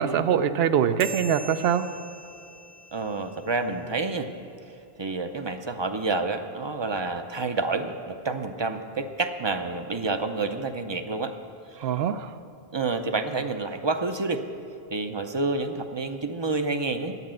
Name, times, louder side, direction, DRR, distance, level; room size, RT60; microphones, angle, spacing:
voice 1, 0.0-2.0 11.8-12.3, right 8 dB, 75° right, 12 dB, 0.8 m, -23 dB
sound 1, 1.0-3.8, right 2 dB, 60° right, 1.4 m, -43 dB
voice 2, 2.9-4.3 5.0-11.3 11.7-11.8 12.7-14.4 14.9-17.3, right 3 dB, 35° right, 7 dB, 0.5 m, -29 dB
11.0 x 9.4 x 7.6 m, 2.7 s
omnidirectional pair, 1.0 m